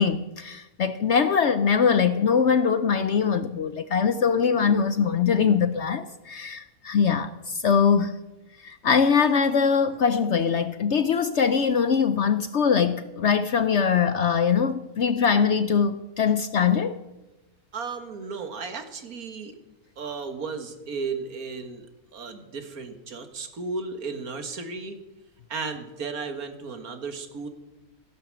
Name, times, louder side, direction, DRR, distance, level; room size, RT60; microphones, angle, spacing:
voice 1, 0.0-8.1 8.6-17.0, left 6 dB, 60° left, 0.8 m, -22 dB
voice 2, 17.7-19.5 20.0-21.9 22.1-25.0 25.5-27.5, right 4 dB, 65° right, 2.0 m, -34 dB
15.5 x 11.0 x 7.5 m
omnidirectional pair, 1.6 m